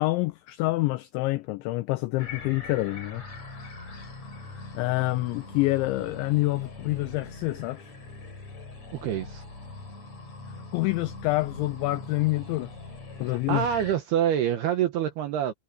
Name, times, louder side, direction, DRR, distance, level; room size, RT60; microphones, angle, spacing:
voice 1, 0.0-3.2 4.5-7.9 10.7-12.7 13.2-13.7, left 20 dB, 85° left, 2.6 m, -27 dB
sound 1, 2.2-14.0, left 3 dB, 35° left, 6.2 m, -42 dB
voice 2, 8.9-9.4 13.3-15.5, right 10 dB, 75° right, 2.5 m, -26 dB
omnidirectional pair, 6.0 m